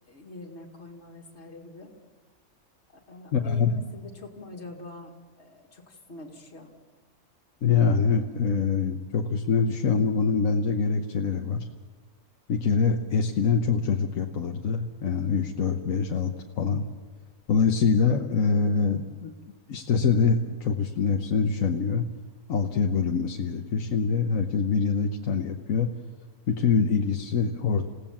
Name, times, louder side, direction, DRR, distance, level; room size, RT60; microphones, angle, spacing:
voice 1, 0.1-1.9 3.1-6.7, left 2 dB, 55° left, 0 dB, 2.6 m, -44 dB
voice 2, 3.3-3.7 7.6-11.7 12.5-16.9 17.5-19.3 19.7-22.0 22.5-25.9 26.5-27.8, left 5 dB, 75° left, 3 dB, 1.4 m, -24 dB
28.0 x 16.5 x 7.3 m, 1.4 s
omnidirectional pair, 1.4 m